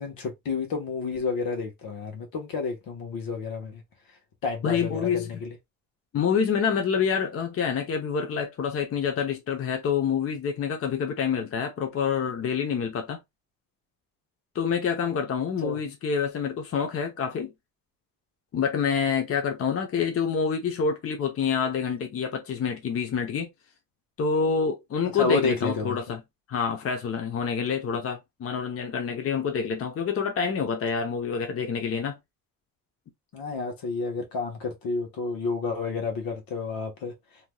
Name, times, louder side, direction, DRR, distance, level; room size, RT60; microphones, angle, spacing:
voice 1, 0.0-3.8 4.4-5.5 15.6-15.8 25.2-26.2 33.3-37.1, left 4 dB, 85° left, 1.2 m, -30 dB
voice 2, 4.6-5.4 6.1-13.2 14.5-17.5 18.5-23.5 24.2-26.2 26.5-32.2, left 6 dB, 40° left, 0.7 m, -27 dB
3.4 x 2.8 x 2.2 m
cardioid pair, 150°, 34 cm